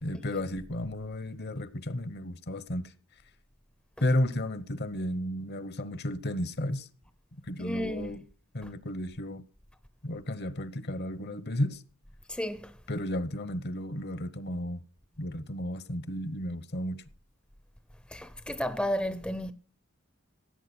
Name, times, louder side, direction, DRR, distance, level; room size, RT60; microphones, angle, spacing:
voice 1, 0.0-2.9 4.0-6.9 7.5-8.2 8.5-9.4 10.0-11.8 12.9-14.8 15.2-17.0, left 1 dB, 50° left, 1.0 m, -33 dB
voice 2, 7.6-8.2 12.3-12.7 18.1-19.5, equal, 5° left, 0.6 m, -32 dB
16.5 x 8.5 x 6.1 m
head